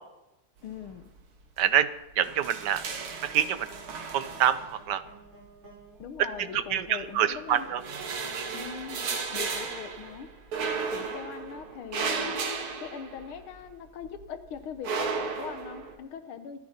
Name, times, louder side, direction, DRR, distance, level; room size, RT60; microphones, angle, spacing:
voice 1, 0.6-1.0 6.0-7.7 8.5-9.0 9.3-10.3 10.9-12.4 12.8-16.6, left 7 dB, 75° left, 10 dB, 1.8 m, -41 dB
sound 1, 0.7-1.2 1.5-1.6 2.0-5.1 6.0-6.9 7.4-13.7 14.0-15.9, right 4 dB, 75° right, 2.5 m, -35 dB
voice 2, 1.6-1.9 2.2-2.8 3.2-3.7 4.1-4.6 4.9-5.0 6.5-7.8 8.3-8.5, right 10 dB, 60° right, 12 dB, 1.3 m, -26 dB
sound 2, 2.8-9.2, right 2 dB, 30° right, 5.3 m, -54 dB
27.0 x 10.5 x 4.3 m, 0.94 s
omnidirectional pair, 2.4 m